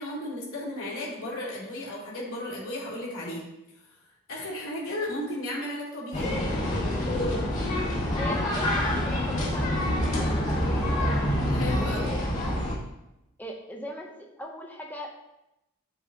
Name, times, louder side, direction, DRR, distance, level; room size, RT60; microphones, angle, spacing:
voice 1, 0.0-3.4 4.3-6.3 11.5-12.1, left 1 dB, 65° left, -8 dB, 3.3 m, -34 dB
sound 1, 6.1-12.7, left 1 dB, 35° left, 2.4 m, -26 dB
voice 2, 8.1-11.3 11.8-12.5 13.4-15.1, equal, 10° left, 0 dB, 0.8 m, -40 dB
9.4 x 6.9 x 2.9 m, 0.90 s
head